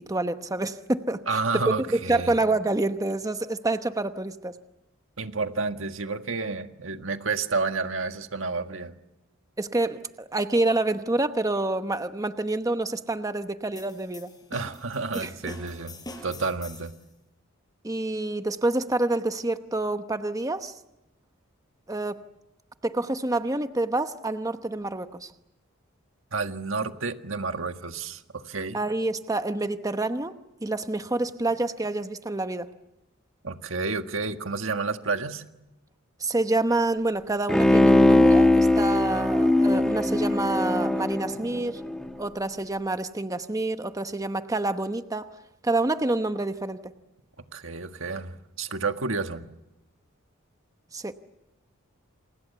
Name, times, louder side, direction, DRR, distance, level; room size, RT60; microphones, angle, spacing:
voice 1, 0.0-1.6 1.9-4.6 9.6-10.0 10.3-14.3 15.1-15.5 17.8-20.7 21.9-22.2 22.8-25.3 28.7-30.3 30.6-32.7 36.2-41.8 42.2-45.3 45.6-46.8 50.9-51.1, right 2 dB, 15° right, 9 dB, 1.0 m, -27 dB
voice 2, 1.3-2.4 5.2-8.9 14.5-16.0 16.2-16.9 26.3-28.8 33.4-35.4 47.5-49.5, right 4 dB, 70° right, 7 dB, 1.7 m, -30 dB
sound 1, 13.8-17.0, left 2 dB, 20° left, 5.4 m, -44 dB
Bowed string instrument, 37.5-42.1 42.5-42.6, left 1 dB, 5° left, 1.6 m, -20 dB
29.0 x 28.5 x 7.0 m, 0.95 s
head